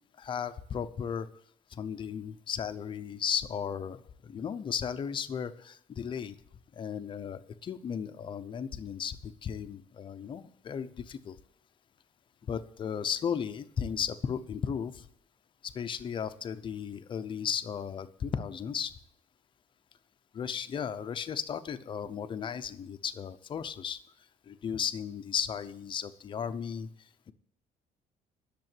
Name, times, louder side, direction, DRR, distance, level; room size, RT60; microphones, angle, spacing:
voice 1, 0.2-1.3 1.7-6.4 6.7-11.3 12.5-15.1 15.6-18.9 20.3-24.0 24.5-26.9, left 7 dB, 35° left, 10 dB, 0.8 m, -35 dB
11.0 x 6.9 x 9.1 m, 0.67 s
cardioid pair, 155°, 15 cm